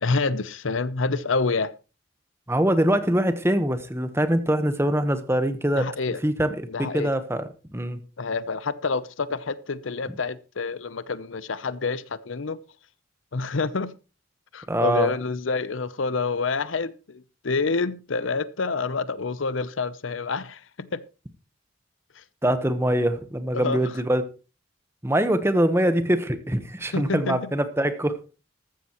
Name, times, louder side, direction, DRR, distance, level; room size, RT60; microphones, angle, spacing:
voice 1, 0.0-1.7 5.8-6.2 6.7-7.1 8.2-12.6 13.3-13.9 14.5-21.0 22.2-22.3 23.5-23.8 26.9-27.5, left 4 dB, 90° left, 0.7 m, -27 dB
voice 2, 2.5-5.9 6.2-8.0 14.7-15.1 22.4-24.2 25.0-28.2, right 1 dB, 15° right, 1.1 m, -23 dB
14.5 x 13.0 x 3.0 m
head